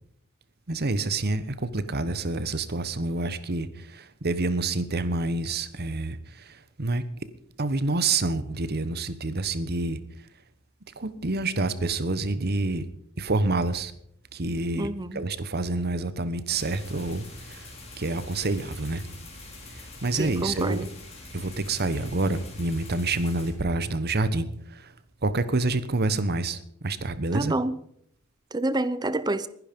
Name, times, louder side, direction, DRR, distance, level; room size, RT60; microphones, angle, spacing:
voice 1, 0.7-7.0 7.6-10.0 11.0-12.9 13.2-13.9 14.3-19.0 19.7-20.9 21.3-24.9 25.2-27.5, right 2 dB, 50° right, 1.1 m, -28 dB
voice 2, 14.8-15.2 20.1-20.9 27.3-27.8 28.5-29.5, right 2 dB, 20° right, 0.7 m, -28 dB
sound 1, 16.5-23.5, left 2 dB, 30° left, 4.4 m, -44 dB
21.0 x 11.0 x 5.3 m
head